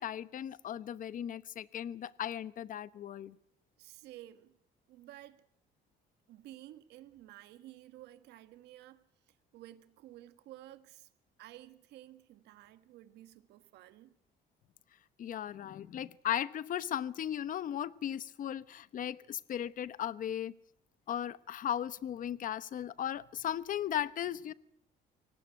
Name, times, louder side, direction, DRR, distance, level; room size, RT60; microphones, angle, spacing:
voice 1, 0.0-3.4 15.2-20.5 21.1-24.5, left 10 dB, 50° left, 1.1 m, -37 dB
voice 2, 3.8-4.5 4.9-5.4 6.3-9.0 9.5-11.1 11.4-14.1, right 14 dB, 80° right, 1.6 m, -53 dB
24.0 x 18.0 x 9.1 m
cardioid pair, 110°, 17 cm